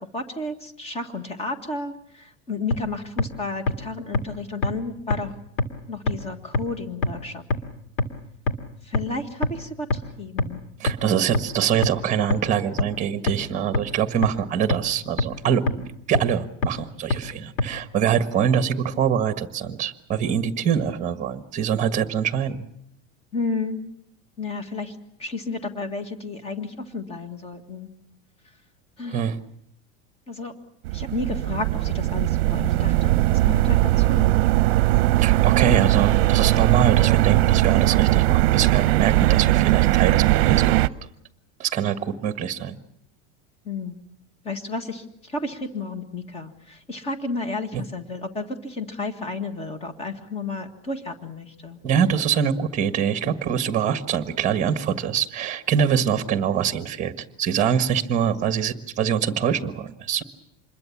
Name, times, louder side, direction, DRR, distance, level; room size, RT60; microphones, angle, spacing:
voice 1, 0.1-5.3 5.9-7.4 8.8-10.6 23.3-23.8 24.4-27.9 29.0-29.2 30.3-30.5 30.9-34.3 43.6-43.9 44.4-51.8, left 3 dB, 15° left, 7 dB, 1.8 m, -32 dB
sound 1, 2.7-2.8 3.2-3.3 3.7-3.8 4.1-4.2 4.6-4.7 5.1-5.2 5.6-5.7 6.1-6.2 6.5-6.6 7.0-7.1 7.5-7.6 8.0-8.1 8.5-8.6 8.9-9.0 9.4-9.5 9.9-10.0 10.4-10.5 10.9-11.0 11.3-11.4 11.8-11.9 12.3-12.4 12.8-12.9 13.3-13.4 13.7-13.8 14.2-14.3 14.7-14.8 15.2-15.3 15.7-15.8 16.1-16.2 16.6-16.7 17.1-17.2 17.6-17.7, left 3 dB, 60° left, 2.8 m, -21 dB
voice 2, 10.8-22.7 29.1-29.4 35.2-40.9 41.6-42.8 47.7-47.8 51.8-57.1 57.4-60.2, right 8 dB, 20° right, 9 dB, 1.5 m, -24 dB
sound 2, 30.8-40.9, right 17 dB, 55° right, 0.9 m, -19 dB
27.0 x 21.5 x 7.3 m, 0.74 s
supercardioid pair, 165°, 37 cm